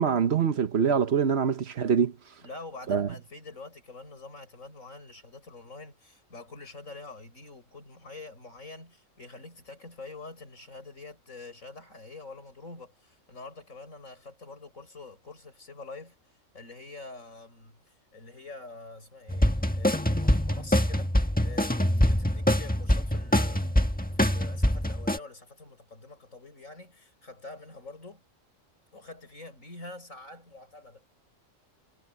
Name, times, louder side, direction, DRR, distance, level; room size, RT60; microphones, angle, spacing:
voice 1, 0.0-2.1 2.9-3.1, right 7 dB, 55° right, 1.2 m, -24 dB
voice 2, 2.4-16.2 16.5-23.8 24.1-28.2 28.9-31.0, left 3 dB, 90° left, 7.2 m, -46 dB
sound 1, 19.3-25.2, left 1 dB, 5° left, 1.4 m, -24 dB
omnidirectional pair, 1.3 m